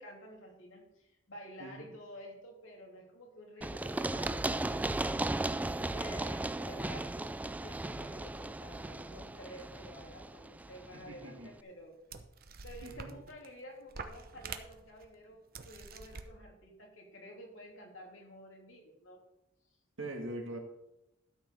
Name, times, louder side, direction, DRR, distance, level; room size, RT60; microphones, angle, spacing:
voice 1, 0.0-11.9 12.6-19.2, equal, 85° left, 0 dB, 2.9 m, -51 dB
Run, 3.6-11.3, right 2 dB, 10° right, 0.3 m, -36 dB
voice 2, 10.9-11.5 12.8-13.1 20.0-20.6, right 1 dB, 75° right, 2 dB, 1.8 m, -42 dB
sound 1, 11.0-11.1 11.8-11.9 12.1-13.5 13.9-15.1 15.5-16.3, right 5 dB, 50° right, 0.9 m, -46 dB
12.5 x 5.3 x 6.7 m, 0.88 s
head